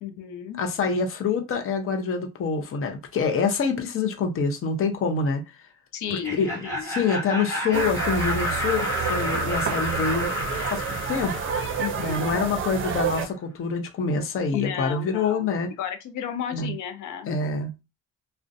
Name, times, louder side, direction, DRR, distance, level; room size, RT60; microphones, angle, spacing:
voice 1, 0.0-0.6 5.9-7.3 11.8-12.4 14.5-15.5 15.8-17.3, left 9 dB, 85° left, 0.5 m, -33 dB
voice 2, 0.6-5.4 6.1-6.6 6.8-10.3 10.6-10.8 11.1-11.4 12.0-15.7 16.5-16.7 17.3-17.7, left 5 dB, 45° left, 0.6 m, -26 dB
Laughter, 6.0-12.8, left 1 dB, 10° left, 1.2 m, -31 dB
sound 1, 7.7-13.3, right 7 dB, 45° right, 0.5 m, -29 dB
2.4 x 2.1 x 2.5 m
cardioid pair, 90°, 30 cm